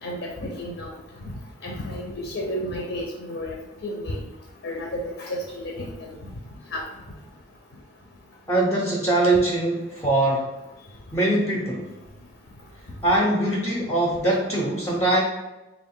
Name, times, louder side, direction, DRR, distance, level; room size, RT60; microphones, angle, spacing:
voice 1, 0.0-0.9 1.2-1.3 1.6-3.5 3.8-4.2 4.6-6.3 6.7-6.8, equal, 65° left, 0 dB, 0.5 m, -32 dB
voice 2, 8.5-10.5 11.1-11.9 13.0-15.2, right 1 dB, 15° left, -2 dB, 0.4 m, -22 dB
3.6 x 2.4 x 3.6 m, 1.0 s
head